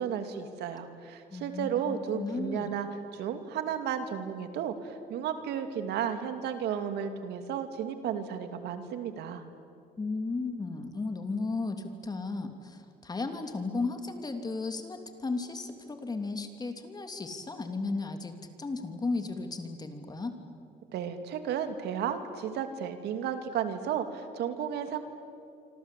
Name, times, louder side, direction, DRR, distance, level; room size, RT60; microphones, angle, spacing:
voice 1, 0.0-9.4 20.9-25.0, right 8 dB, 80° right, 8 dB, 2.6 m, -33 dB
voice 2, 1.3-2.7 10.0-20.4, left 3 dB, 25° left, 6 dB, 2.8 m, -35 dB
26.0 x 26.0 x 8.4 m, 2.4 s
cardioid pair, 110°, 17 cm